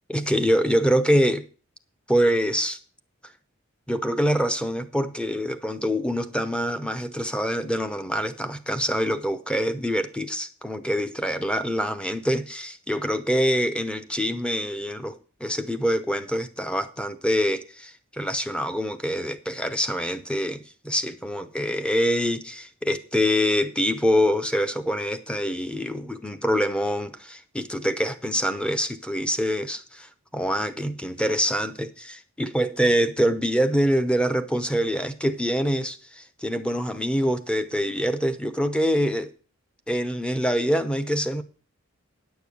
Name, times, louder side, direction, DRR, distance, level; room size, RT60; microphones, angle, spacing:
voice 1, 0.1-1.4 2.1-2.8 3.9-15.1 15.4-39.3 39.9-41.4, equal, 5° left, 0.7 m, -25 dB
10.0 x 6.9 x 7.0 m
head